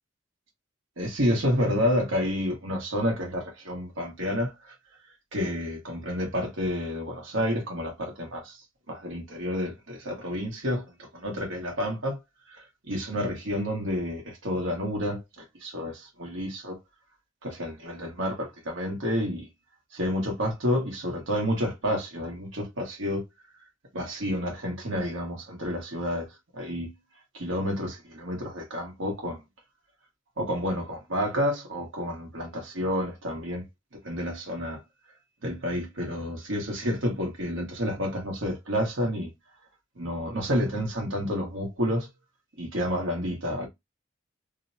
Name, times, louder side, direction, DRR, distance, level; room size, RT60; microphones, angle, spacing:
voice 1, 1.0-4.7 5.3-8.6 8.9-12.2 12.5-16.8 17.4-19.5 19.9-23.2 23.9-26.3 26.5-26.9 27.3-29.4 30.4-33.6 34.0-34.8 35.4-39.3 40.0-42.1 42.6-43.7, equal, 80° right, 1.3 m, -30 dB
3.1 x 2.1 x 2.6 m
head